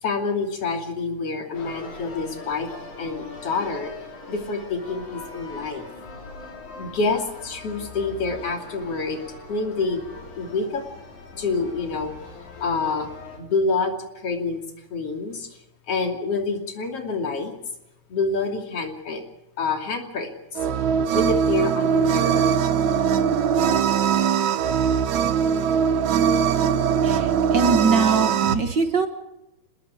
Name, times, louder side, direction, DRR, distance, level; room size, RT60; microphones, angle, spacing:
voice 1, 0.0-2.7 3.0-3.9 4.3-5.9 6.8-9.2 9.5-10.1 10.4-10.8 11.4-12.1 12.6-13.1 13.4-14.6 14.9-15.5 15.9-17.5 18.1-19.2 19.6-20.6 21.1-22.6, left 3 dB, 55° left, 4 dB, 3.7 m, -27 dB
sound 1, 1.5-13.4, left 3 dB, 80° left, 5.2 m, -41 dB
sound 2, 20.6-28.5, right 7 dB, 80° right, 2.4 m, -21 dB
voice 2, 27.0-29.1, right 4 dB, 45° right, 7 dB, 1.7 m, -22 dB
26.0 x 20.5 x 5.0 m, 0.92 s
omnidirectional pair, 3.3 m